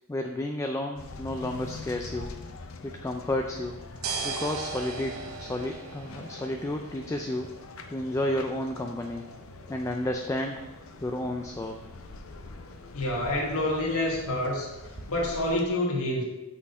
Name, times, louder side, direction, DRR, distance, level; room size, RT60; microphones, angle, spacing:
voice 1, 0.1-2.4 2.8-3.8 4.2-7.5 7.9-9.2 9.7-10.7 11.0-11.8, left 1 dB, 15° left, 3 dB, 0.3 m, -31 dB
sound 1, 1.0-15.6, left 3 dB, 65° left, 0.6 m, -45 dB
sound 2, 3.6-15.7, right 4 dB, 70° right, 0.8 m, -42 dB
voice 2, 12.9-14.7 15.1-16.2, left 1 dB, 85° left, -2 dB, 1.6 m, -27 dB
6.0 x 4.1 x 5.3 m, 1.1 s
head